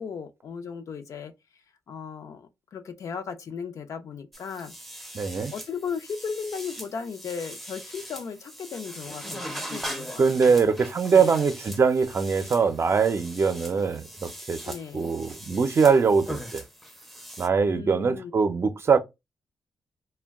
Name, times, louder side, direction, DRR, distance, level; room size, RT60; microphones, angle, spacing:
voice 1, 0.0-4.7 5.5-10.6 11.1-11.3 14.6-15.1 17.7-18.3, left 6 dB, 65° left, 0.5 m, -36 dB
sound 1, 4.3-17.5, equal, ahead, 0.5 m, -41 dB
voice 2, 5.1-5.5 10.2-16.6 17.4-19.0, right 5 dB, 45° right, 0.5 m, -22 dB
2.2 x 2.1 x 3.4 m
cardioid pair, 75°, 6 cm